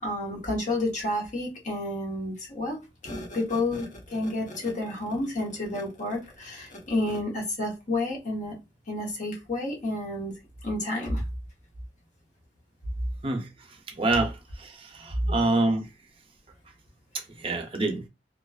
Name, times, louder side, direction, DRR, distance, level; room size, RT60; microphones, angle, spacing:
voice 1, 0.0-8.5 8.9-10.3 10.6-11.2 15.2-15.5, left 1 dB, 45° left, 0.9 m, -30 dB
voice 2, 14.0-14.3 14.6-14.7 15.0-15.8 17.4-18.0, right 2 dB, 30° right, 0.5 m, -25 dB
2.4 x 2.2 x 2.3 m
head